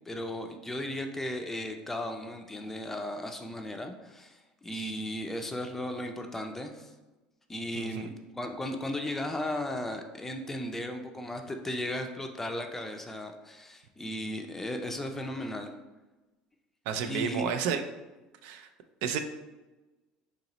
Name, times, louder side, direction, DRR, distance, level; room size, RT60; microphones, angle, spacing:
voice 1, 0.1-6.9 7.5-15.7 17.1-17.6, left 1 dB, 10° left, 4 dB, 0.4 m, -36 dB
voice 2, 7.8-8.1 16.9-17.8 18.4-18.7 19.0-19.2, right 7 dB, 75° right, 8 dB, 0.3 m, -31 dB
3.0 x 2.9 x 3.9 m, 1.1 s
supercardioid pair, 110°, 3 cm